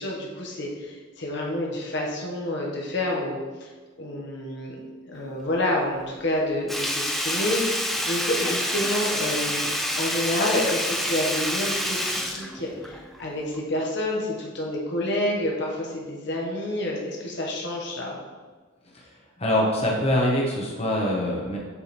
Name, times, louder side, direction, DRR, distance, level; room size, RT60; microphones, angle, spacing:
voice 1, 0.0-3.7 4.0-9.7 10.0-18.2, left 1 dB, 65° left, -2 dB, 1.2 m, -28 dB
Sink (filling or washing), 6.7-13.2 13.5-13.6, equal, ahead, 0.4 m, -28 dB
voice 2, 19.4-21.6, left 1 dB, 30° left, -3 dB, 1.1 m, -24 dB
7.0 x 3.5 x 4.3 m, 1.4 s
head